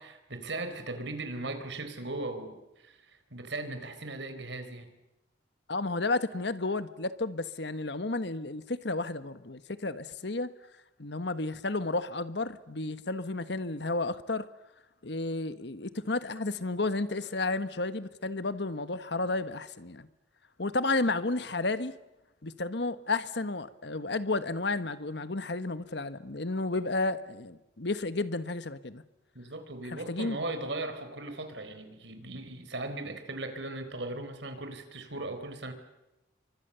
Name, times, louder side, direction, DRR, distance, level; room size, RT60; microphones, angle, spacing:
voice 1, 0.0-4.9 29.3-35.7, right 2 dB, 70° right, 8 dB, 4.1 m, -38 dB
voice 2, 5.7-10.5 11.0-14.5 15.0-20.1 20.6-22.0 22.4-29.0 29.9-30.4, left 2 dB, 65° left, 12 dB, 1.3 m, -32 dB
29.5 x 24.5 x 6.9 m, 0.94 s
head